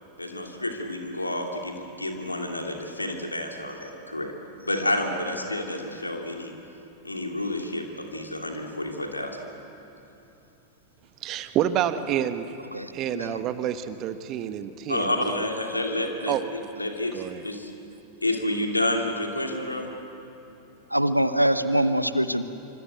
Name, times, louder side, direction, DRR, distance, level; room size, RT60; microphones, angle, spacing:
voice 1, 0.2-4.3 4.6-6.5 7.0-9.4 14.9-17.7 18.2-19.9, left 1 dB, 85° left, 2 dB, 2.9 m, -29 dB
voice 2, 11.2-12.5 12.9-15.4 16.3-16.4 17.1-17.4, right 10 dB, 35° right, 10 dB, 1.4 m, -28 dB
voice 3, 12.7-13.4 20.9-22.4, right 1 dB, 90° right, 12 dB, 1.0 m, -24 dB
26.5 x 25.5 x 8.1 m, 3.0 s
figure-of-eight pair, 90°, 0 cm